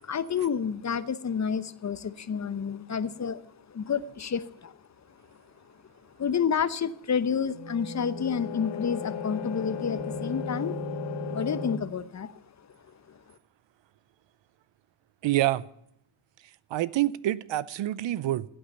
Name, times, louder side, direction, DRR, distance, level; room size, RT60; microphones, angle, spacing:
voice 1, 0.0-4.7 6.2-10.8 11.3-12.3, left 7 dB, 35° left, 0.9 m, -29 dB
sound 1, 7.4-11.8, left 4 dB, 65° left, 1.9 m, -35 dB
voice 2, 15.2-15.6 16.7-18.5, right 15 dB, 70° right, 0.7 m, -26 dB
15.5 x 8.7 x 7.1 m
cardioid pair, 85°, 46 cm